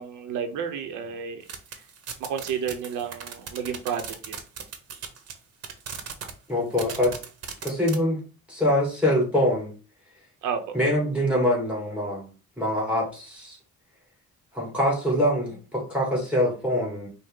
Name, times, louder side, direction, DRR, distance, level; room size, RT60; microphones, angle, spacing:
voice 1, 0.0-1.4 2.2-4.4 10.4-10.6, right 7 dB, 90° right, 6 dB, 0.7 m, -31 dB
sound 1, 1.5-5.3 5.6-6.3 6.7-8.0, right 7 dB, 55° right, 0.9 m, -37 dB
voice 2, 6.5-7.1 7.6-8.2 8.5-9.7 10.7-12.3 12.6-13.6 14.5-17.1, left 1 dB, 5° right, -3 dB, 2.1 m, -24 dB
5.3 x 2.1 x 3.7 m, 0.36 s
cardioid pair, 90°, 30 cm